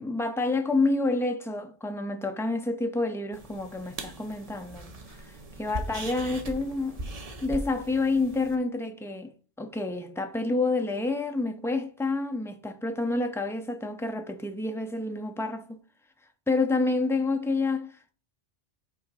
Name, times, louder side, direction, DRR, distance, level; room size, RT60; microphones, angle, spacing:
voice 1, 0.0-4.9 5.2-7.0 7.4-9.3 9.6-15.8 16.5-18.1, left 3 dB, 5° left, 0.3 m, -28 dB
sound 1, 3.3-8.6, right 2 dB, 35° right, 0.9 m, -39 dB
5.6 x 3.8 x 5.4 m
omnidirectional pair, 1.2 m